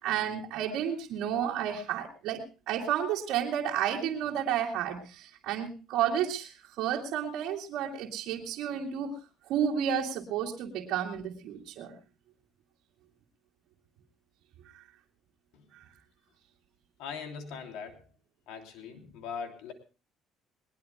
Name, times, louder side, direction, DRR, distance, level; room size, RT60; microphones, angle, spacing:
voice 1, 0.0-9.1 9.5-12.0, right 9 dB, 70° right, -4 dB, 2.5 m, -31 dB
voice 2, 17.0-18.1 18.5-19.7, left 6 dB, 85° left, 4 dB, 3.1 m, -41 dB
21.0 x 20.5 x 2.2 m, 0.33 s
cardioid pair, 145°, 0 cm